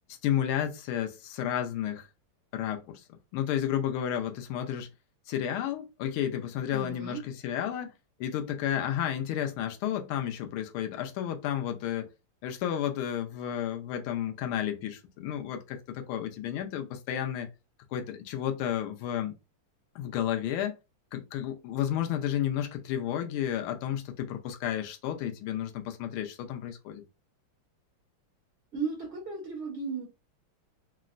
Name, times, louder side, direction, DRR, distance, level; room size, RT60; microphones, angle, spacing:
voice 1, 0.1-2.1 2.5-3.0 3.3-4.9 5.3-7.9 8.2-12.1 12.4-17.5 17.9-19.3 19.9-20.8 21.1-27.0, left 10 dB, 80° left, 1.5 m, -32 dB
voice 2, 6.7-7.3 28.7-30.1, right 4 dB, 60° right, 0.7 m, -35 dB
3.9 x 2.1 x 2.4 m
omnidirectional pair, 2.4 m